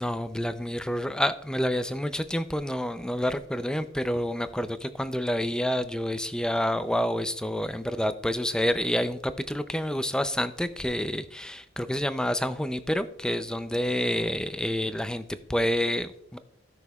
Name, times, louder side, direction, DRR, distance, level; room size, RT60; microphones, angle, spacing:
voice 1, 0.0-16.4, equal, 5° left, 11 dB, 0.4 m, -28 dB
16.0 x 6.2 x 2.3 m, 0.73 s
head